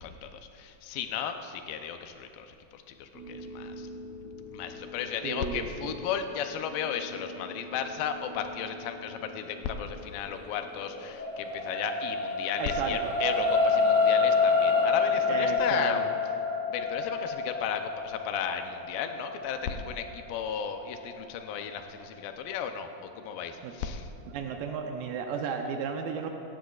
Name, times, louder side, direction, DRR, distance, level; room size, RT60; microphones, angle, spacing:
voice 1, 0.0-3.9 4.5-16.0 16.7-24.0, left 8 dB, 90° left, 7 dB, 2.5 m, -35 dB
sound 1, 3.1-11.1, left 2 dB, 30° right, 2.3 m, -45 dB
voice 2, 5.2-6.0 12.6-13.2 15.3-16.1 23.6-23.7 24.3-26.3, right 6 dB, 85° right, 3 dB, 2.4 m, -34 dB
sound 2, 10.4-22.9 23.4-23.5, left 4 dB, 45° right, 0.9 m, -28 dB
17.5 x 14.0 x 2.4 m, 2.7 s
omnidirectional pair, 4.0 m